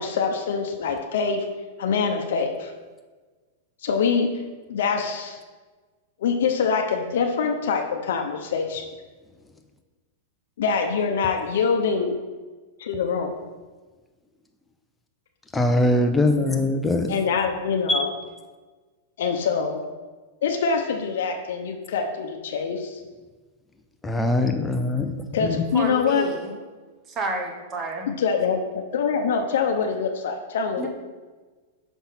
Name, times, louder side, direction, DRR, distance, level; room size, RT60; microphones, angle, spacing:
voice 1, 0.0-1.5 1.8-2.7 3.8-4.3 4.7-5.4 6.2-8.8 10.6-12.2 12.8-13.3 17.1-18.1 19.2-19.8 20.4-22.9 25.3-26.3 28.1-30.9, left 5 dB, 75° left, 4 dB, 0.7 m, -24 dB
voice 2, 15.5-17.1 17.9-18.1 24.0-25.1 25.4-25.6, left 2 dB, 10° left, 5 dB, 0.6 m, -22 dB
voice 3, 25.7-26.6 27.1-28.1 30.8-30.9, right 2 dB, 25° right, 3 dB, 0.9 m, -30 dB
5.9 x 3.7 x 5.7 m, 1.3 s
supercardioid pair, 145°, 0 cm